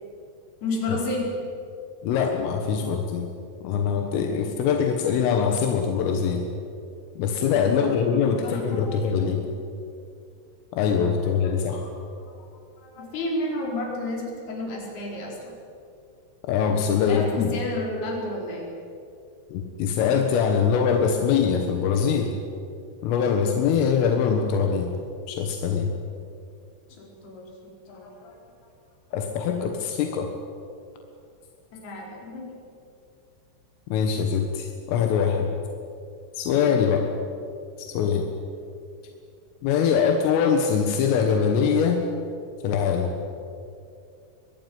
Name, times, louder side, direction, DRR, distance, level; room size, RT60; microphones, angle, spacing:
voice 1, 0.6-1.3 2.8-2.9 7.9-9.0 9.2-9.4 11.4-11.5 12.2-12.4 12.8-15.5 17.0-18.7 26.9-28.4 31.7-32.6, left 2 dB, 55° left, -1 dB, 6.5 m, -32 dB
voice 2, 2.0-3.3 3.6-6.4 7.2-9.5 10.7-11.9 16.5-17.5 19.5-22.4 23.0-24.9 25.3-25.9 29.1-30.3 33.9-35.5 36.4-37.1 37.8-38.3 39.6-42.1 42.6-43.1, left 6 dB, 85° left, 4 dB, 4.1 m, -23 dB
23.5 x 19.5 x 9.5 m, 2.5 s
omnidirectional pair, 5.7 m